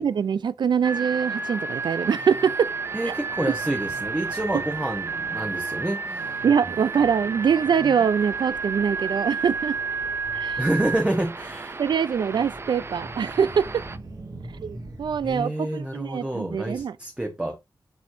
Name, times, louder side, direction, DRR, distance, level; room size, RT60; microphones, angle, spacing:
voice 1, 0.0-2.7 3.1-3.2 6.4-9.8 10.3-10.6 11.8-13.6 14.6-17.0, right 7 dB, 80° right, 0.4 m, -23 dB
sound 1, 0.8-14.0, right 4 dB, 35° right, 0.6 m, -31 dB
sound 2, 2.7-15.4, right 2 dB, 55° right, 1.8 m, -45 dB
voice 2, 2.9-6.4 10.6-11.8 15.2-17.6, right 1 dB, 15° right, 0.9 m, -28 dB
7.0 x 6.2 x 2.6 m
wide cardioid pair, 135°, 8 cm